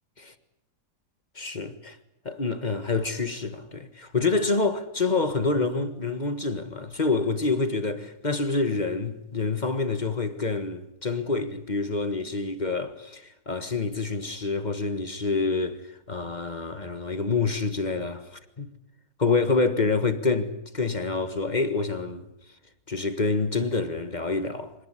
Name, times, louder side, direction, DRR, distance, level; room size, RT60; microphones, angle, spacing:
voice 1, 1.3-2.0 2.2-18.7 19.2-22.3 22.9-24.7, left 3 dB, 25° left, 1.5 m, -27 dB
25.5 x 19.0 x 9.8 m
omnidirectional pair, 2.0 m